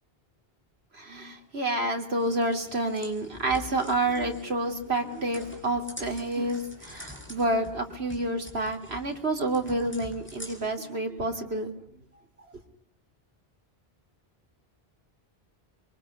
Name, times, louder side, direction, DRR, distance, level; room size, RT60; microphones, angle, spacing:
voice 1, 0.9-11.7, right 2 dB, 80° right, 4 dB, 3.3 m, -29 dB
sound 1, 2.2-10.8, left 1 dB, 10° left, 5.8 m, -46 dB
25.0 x 23.5 x 9.7 m, 0.65 s
omnidirectional pair, 1.1 m